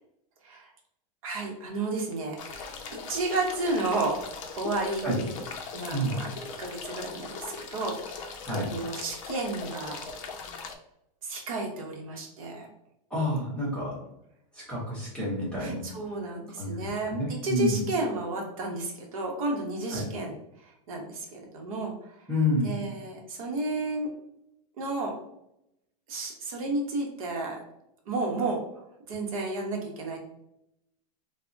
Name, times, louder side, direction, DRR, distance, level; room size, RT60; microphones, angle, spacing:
voice 1, 1.2-2.8 3.1-4.2 4.5-5.3 5.7-6.3 6.6-10.1 11.2-12.7 15.6-22.2 22.6-24.1 24.8-25.1 26.1-27.6 28.1-28.6 29.1-30.2, right 2 dB, 60° right, 0 dB, 0.8 m, -32 dB
sound 1, 2.4-10.7, left 4 dB, 55° left, 0.4 m, -40 dB
voice 2, 13.1-14.0 14.7-15.8 16.6-16.7 17.1-17.8 19.9-20.0 22.3-22.7, left 1 dB, 5° left, -8 dB, 0.8 m, -28 dB
3.3 x 2.0 x 2.5 m, 0.82 s
supercardioid pair, 175°, 20 cm